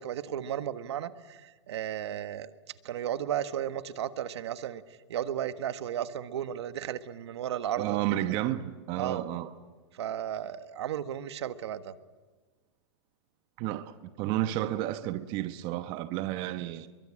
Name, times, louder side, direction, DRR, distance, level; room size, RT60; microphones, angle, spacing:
voice 1, 0.0-2.5 2.8-4.8 5.1-8.2 9.0-9.2 9.9-11.9, right 10 dB, 70° right, 1.5 m, -34 dB
voice 2, 7.8-9.5 13.6-16.9, right 14 dB, 35° right, 1.1 m, -31 dB
29.0 x 23.0 x 8.8 m
supercardioid pair, 155°, 14 cm